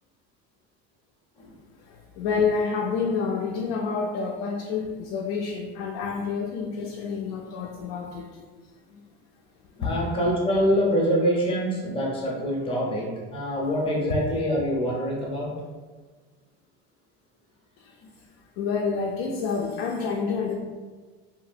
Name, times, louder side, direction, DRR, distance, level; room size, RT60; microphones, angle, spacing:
voice 1, 1.9-8.4 9.8-9.9 17.8-17.9 18.6-20.5, left 5 dB, 80° left, -1 dB, 0.5 m, -28 dB
voice 2, 9.8-15.5, equal, 15° left, -2 dB, 0.6 m, -25 dB
2.8 x 2.6 x 2.5 m, 1.4 s
cardioid pair, 145°, 31 cm